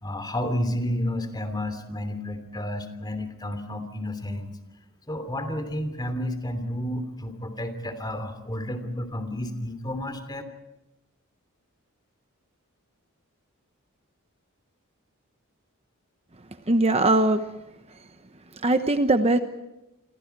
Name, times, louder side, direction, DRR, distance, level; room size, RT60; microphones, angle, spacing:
voice 1, 0.0-4.6 5.1-10.4, left 1 dB, 20° left, 9 dB, 3.1 m, -31 dB
voice 2, 16.7-17.4 18.6-19.4, right 2 dB, 30° right, 8 dB, 1.0 m, -20 dB
29.0 x 25.0 x 4.7 m, 0.94 s
head